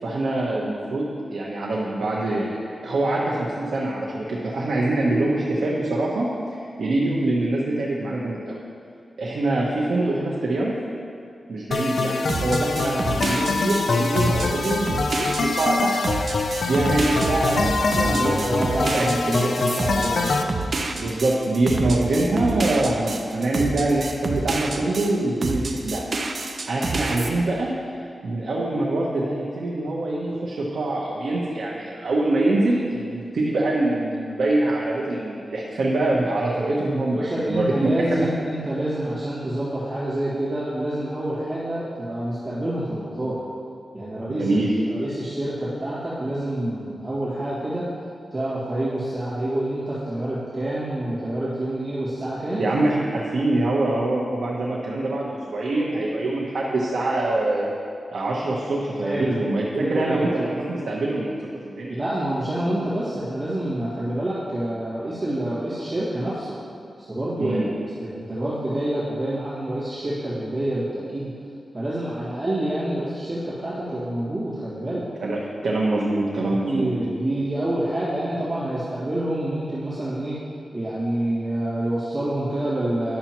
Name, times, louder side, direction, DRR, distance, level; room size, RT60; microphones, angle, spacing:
voice 1, 0.0-2.6 2.8-8.6 9.2-10.8 11.5-16.0 16.7-19.5 20.9-26.4 26.7-27.7 28.2-38.3 44.4-44.7 52.6-57.7 58.1-62.0 67.4-67.6 75.2-75.4 75.6-76.9, right 2 dB, 80° right, -4 dB, 0.9 m, -24 dB
sound 1, 11.7-20.4, left 3 dB, 70° left, 0.4 m, -24 dB
sound 2, 12.3-25.1 25.4-27.3, right 3 dB, 55° right, 0.6 m, -28 dB
voice 2, 18.0-20.6 37.1-43.4 43.9-44.5 44.9-47.8 48.3-52.7 59.0-59.4 59.8-60.3 61.9-66.6 67.0-67.6 68.0-71.3 71.7-75.1 76.7-80.4 80.7-83.2, right 1 dB, 30° right, -12 dB, 1.9 m, -27 dB
10.5 x 7.0 x 3.0 m, 2.4 s
wide cardioid pair, 110°, 0 cm